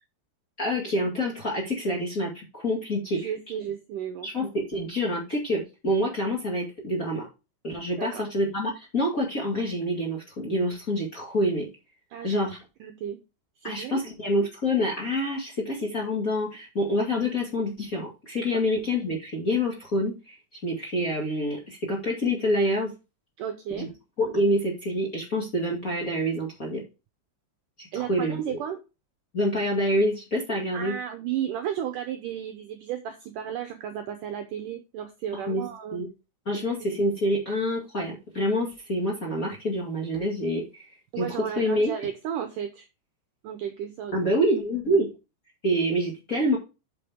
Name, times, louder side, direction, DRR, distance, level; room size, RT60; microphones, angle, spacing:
voice 1, 0.6-3.3 4.2-7.2 7.6-11.7 12.2-12.6 13.6-20.4 20.6-22.9 23.8-23.9 24.2-26.8 27.8-28.4 29.3-30.9 35.5-35.6 35.9-36.1 36.5-40.8 41.2-41.3 41.6-41.9 44.1-45.1 45.6-46.6, equal, 30° left, -2 dB, 1.8 m, -27 dB
voice 2, 3.1-4.3 8.0-8.3 12.1-12.4 12.8-13.2 13.6-14.0 18.5-18.6 23.4-23.9 27.9-28.8 30.7-36.0 36.5-36.7 41.1-42.9 43.4-44.3, right 9 dB, 75° right, 7 dB, 2.0 m, -33 dB
8.2 x 7.0 x 3.5 m, 0.28 s
omnidirectional pair, 4.7 m